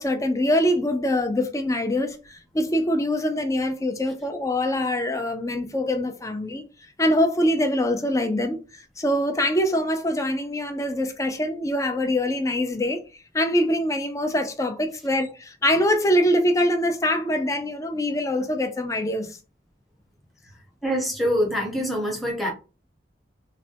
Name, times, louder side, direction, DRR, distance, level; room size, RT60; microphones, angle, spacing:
voice 1, 0.0-6.6 7.0-8.6 9.0-13.0 13.3-19.4, left 1 dB, 20° left, 0.4 m, -24 dB
voice 2, 20.8-22.5, equal, ahead, 0.8 m, -25 dB
3.2 x 2.1 x 2.8 m
head